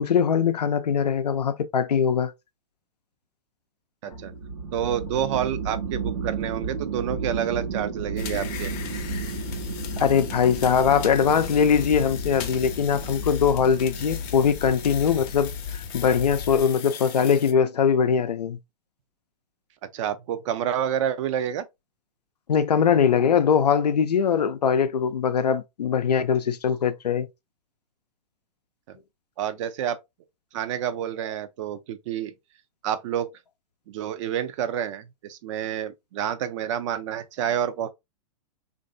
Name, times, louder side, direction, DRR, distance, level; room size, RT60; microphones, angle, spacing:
voice 1, 0.0-2.3 10.0-18.6 22.5-27.3, left 7 dB, 90° left, 0.5 m, -21 dB
sound 1, 4.1-16.2, right 6 dB, 85° right, 1.0 m, -34 dB
voice 2, 4.7-8.7 19.9-21.7 28.9-29.0 29.4-30.0 30.5-32.3 32.8-33.3 33.9-37.9, right 9 dB, 50° right, 0.5 m, -28 dB
sound 2, 8.2-17.5, left 7 dB, 35° left, 0.6 m, -35 dB
3.1 x 2.6 x 2.5 m
hypercardioid pair, 120°, 20 cm